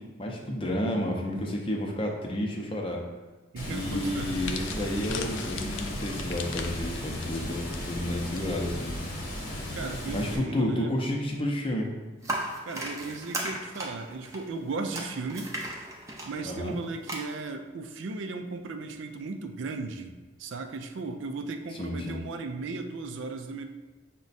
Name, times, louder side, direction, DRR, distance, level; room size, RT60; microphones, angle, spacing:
voice 1, 0.0-3.0 3.7-9.0 10.1-11.9 16.4-16.7 21.8-22.2, left 1 dB, 25° left, 0 dB, 0.6 m, -31 dB
voice 2, 3.5-4.3 9.7-11.0 12.7-15.6 16.3-23.6, right 3 dB, 75° right, 6 dB, 0.4 m, -36 dB
Water, 3.6-10.4, left 1 dB, 50° left, 0.9 m, -35 dB
sound 1, 4.2-8.4 8.7-8.9 9.8-10.1, left 6 dB, 75° left, 0.4 m, -41 dB
sound 2, 12.2-17.2, right 1 dB, 15° right, 0.5 m, -36 dB
6.0 x 2.2 x 4.0 m, 1.2 s
head